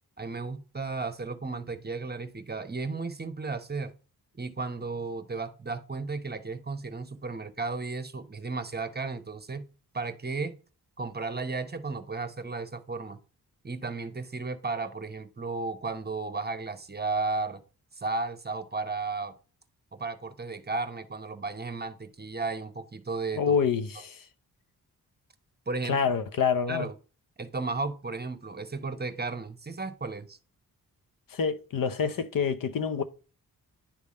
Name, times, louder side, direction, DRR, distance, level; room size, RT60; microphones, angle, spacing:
voice 1, 0.2-3.9 4.3-9.7 9.9-10.6 11.0-13.2 13.6-17.6 17.9-19.3 19.9-23.6 25.7-26.0 26.7-26.9 27.4-30.4, right 3 dB, 25° right, 1.0 m, -34 dB
voice 2, 23.4-24.3 25.9-26.9 31.3-33.0, left 6 dB, 65° left, 0.8 m, -27 dB
10.5 x 3.5 x 4.2 m
cardioid pair, 75°, 36 cm